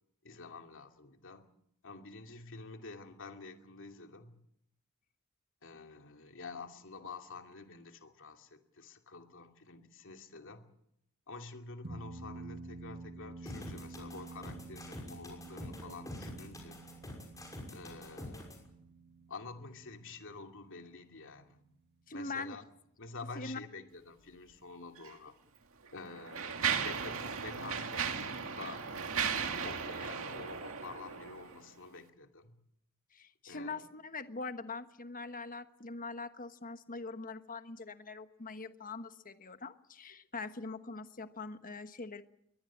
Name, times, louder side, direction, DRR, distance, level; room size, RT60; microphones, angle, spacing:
voice 1, 0.2-1.5 1.8-4.3 5.6-10.6 11.3-16.8 17.7-18.5 19.3-21.6 22.1-22.6 23.0-25.4 25.9-28.1 28.5-28.9 29.4-32.6 33.5-33.9, left 3 dB, 65° left, 5 dB, 2.7 m, -48 dB
sound 1, 11.8-22.5, right 3 dB, 50° right, 1.8 m, -51 dB
sound 2, 13.5-18.6, left 1 dB, 15° left, 6.0 m, -46 dB
voice 2, 22.1-22.6 23.3-23.6 33.1-42.2, left 3 dB, 40° left, 10 dB, 1.3 m, -43 dB
Mechanisms, 25.0-25.1 25.8-31.6, right 6 dB, 65° right, 2.3 m, -36 dB
23.0 x 19.5 x 7.4 m, 0.76 s
head